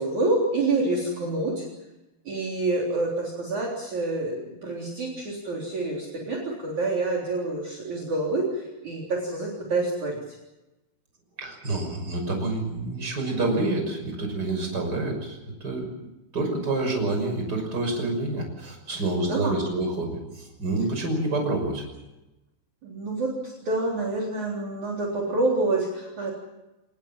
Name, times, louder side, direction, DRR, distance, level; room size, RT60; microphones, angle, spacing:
voice 1, 0.0-1.6 2.2-10.4 18.9-19.0 19.3-19.6 22.8-26.3, right 2 dB, 40° right, -2 dB, 4.7 m, -27 dB
voice 2, 11.4-15.9 16.3-21.8, right 2 dB, 20° right, 3 dB, 6.3 m, -28 dB
26.5 x 20.0 x 7.4 m, 1.0 s
omnidirectional pair, 5.4 m